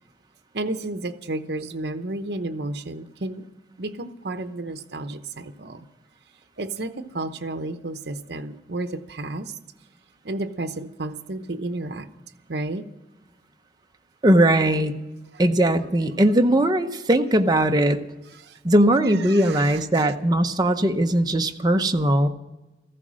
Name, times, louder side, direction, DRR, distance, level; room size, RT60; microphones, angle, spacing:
voice 1, 0.5-3.5 3.8-5.9 6.6-9.6 10.2-12.1 12.5-12.8 18.3-18.6 19.0-20.1, right 2 dB, 65° right, 9 dB, 0.9 m, -32 dB
voice 2, 14.2-15.0 15.4-18.0 18.6-22.3, right 1 dB, 25° right, 5 dB, 0.8 m, -19 dB
15.5 x 14.5 x 6.3 m, 1.0 s
head